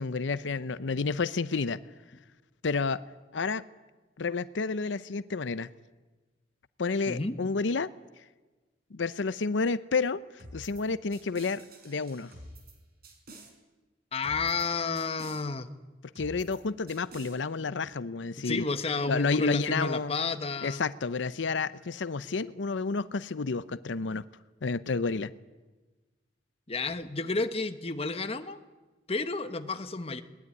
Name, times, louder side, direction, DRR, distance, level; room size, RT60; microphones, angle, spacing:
voice 1, 0.0-1.8 2.6-3.0 3.3-3.6 4.2-5.7 6.8-7.9 8.9-12.3 16.2-18.6 19.1-20.1 20.6-24.2 24.6-25.3, left 4 dB, 85° left, 15 dB, 0.7 m, -30 dB
voice 2, 7.1-7.4 14.1-15.7 18.4-20.8 26.7-28.6 29.1-30.2, left 4 dB, 35° left, 9 dB, 1.1 m, -31 dB
sound 1, 10.4-10.8 11.1-12.7 13.0-13.5 14.2-14.7 15.0-15.4 16.2-16.6 16.9-17.4, right 1 dB, 55° right, 4.9 m, -48 dB
21.5 x 19.0 x 9.7 m, 1.2 s
head